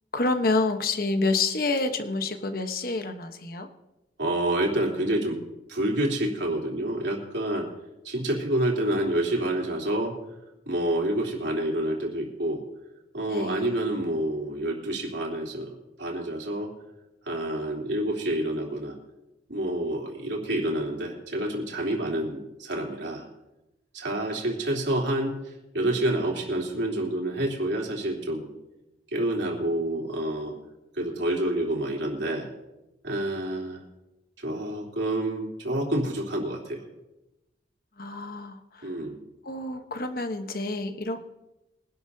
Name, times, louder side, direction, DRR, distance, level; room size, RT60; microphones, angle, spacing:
voice 1, 0.1-3.7 13.3-13.8 38.0-38.9 39.4-41.3, left 3 dB, 50° left, 7 dB, 1.1 m, -28 dB
voice 2, 4.2-5.4 5.7-7.7 8.0-10.1 10.7-12.6 13.1-15.7 16.0-16.7 17.2-19.0 19.5-23.3 23.9-25.3 25.7-28.4 29.1-30.5 30.9-32.5 33.0-33.8 34.4-36.8 38.8-39.2, right 1 dB, 75° right, -1 dB, 3.3 m, -28 dB
23.5 x 12.0 x 2.8 m, 0.98 s
head